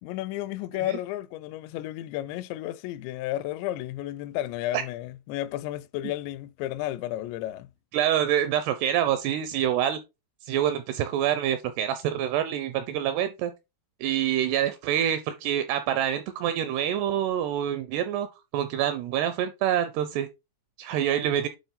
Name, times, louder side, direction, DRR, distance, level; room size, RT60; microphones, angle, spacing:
voice 1, 0.0-7.7, left 14 dB, 85° left, 2.7 m, -32 dB
voice 2, 7.9-10.0 10.4-13.5 14.0-18.3 18.5-20.3 20.8-21.5, right 10 dB, 80° right, 2.5 m, -26 dB
9.3 x 3.5 x 4.0 m
omnidirectional pair, 5.2 m